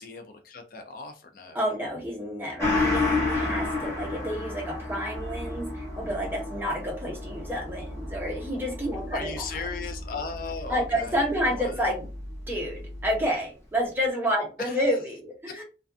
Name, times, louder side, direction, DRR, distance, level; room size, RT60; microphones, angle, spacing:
voice 1, 0.0-1.6 9.1-11.2 11.5-12.0 14.6-15.0 15.5-15.6, left 4 dB, 50° left, 5 dB, 0.4 m, -37 dB
voice 2, 1.5-9.4 10.7-12.1 12.5-15.6, equal, 10° right, -1 dB, 0.6 m, -29 dB
Gong, 2.6-11.6 11.9-12.0, left 3 dB, 15° left, 0.9 m, -31 dB
sound 1, 5.1-13.3, equal, 80° right, 0.5 m, -41 dB
2.4 x 2.2 x 2.4 m, 0.33 s
head